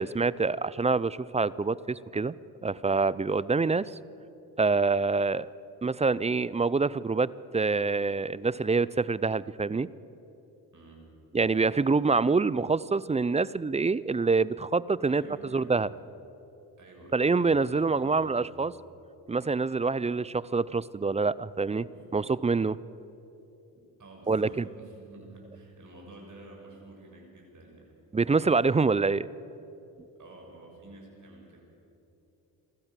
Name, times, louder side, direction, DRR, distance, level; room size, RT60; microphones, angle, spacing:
voice 1, 0.0-2.3 2.6-3.9 4.6-5.5 5.8-9.9 11.3-15.2 15.5-15.9 17.1-18.7 19.3-21.9 22.1-22.8 24.3-24.6 28.1-29.3, right 4 dB, 15° right, 20 dB, 0.4 m, -26 dB
voice 2, 10.7-11.1 15.1-16.0 16.8-17.4 17.8-18.7 21.9-22.1 23.7-28.0 30.1-31.6, right 2 dB, 45° right, -1 dB, 6.5 m, -50 dB
28.0 x 13.0 x 7.5 m, 3.0 s
supercardioid pair, 65°, 42 cm